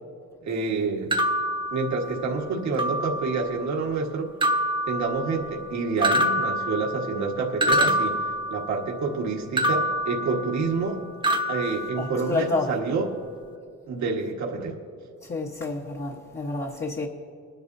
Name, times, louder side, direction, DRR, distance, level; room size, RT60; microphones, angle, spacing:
voice 1, 0.4-1.1 1.7-4.3 4.9-8.2 8.5-11.0 11.5-13.1 13.9-14.7, right 4 dB, 65° right, -1 dB, 1.6 m, -28 dB
sound 1, 1.1-2.4 2.8-3.6 4.4-5.7 6.0-9.0 9.6-10.9 11.2-12.6, equal, 15° right, 1.1 m, -27 dB
voice 2, 12.0-12.7 15.3-17.1, left 2 dB, 30° left, -1 dB, 1.2 m, -29 dB
22.5 x 10.5 x 2.7 m, 2.2 s
cardioid pair, 90°, 30 cm